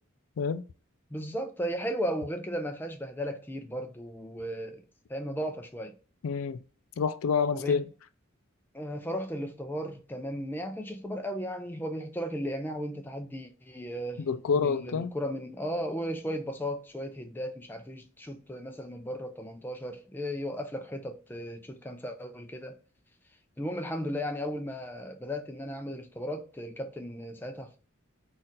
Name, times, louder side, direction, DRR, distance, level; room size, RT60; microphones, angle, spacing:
voice 1, 1.1-4.8 5.1-5.9 7.5-7.9 8.7-14.2 14.6-22.8 23.6-27.8, equal, 10° left, 0.4 m, -35 dB
voice 2, 6.2-6.6 7.0-7.9 14.2-15.1, left 5 dB, 80° left, 0.4 m, -28 dB
4.1 x 2.4 x 3.8 m
head